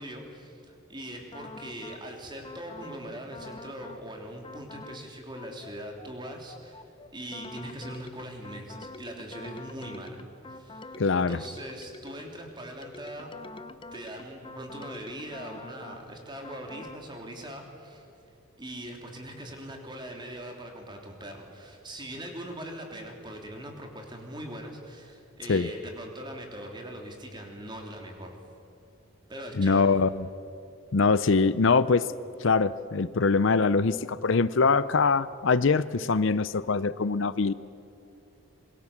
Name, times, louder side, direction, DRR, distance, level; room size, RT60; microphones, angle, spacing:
voice 1, 0.0-10.2 10.5-13.3 13.9-18.1 18.6-28.4 29.3-30.0, right 1 dB, 20° right, 2 dB, 3.4 m, -41 dB
sound 1, 1.3-2.0 2.4-3.0 3.3-4.0 4.4-5.0 5.3-12.4 12.8-16.0 16.4-17.0, left 2 dB, 25° left, 0.7 m, -46 dB
voice 2, 11.0-11.4 25.5-25.7 29.6-30.3 30.9-32.1 32.4-37.5, left 4 dB, 60° left, 16 dB, 0.6 m, -23 dB
26.5 x 22.0 x 7.3 m, 2.7 s
head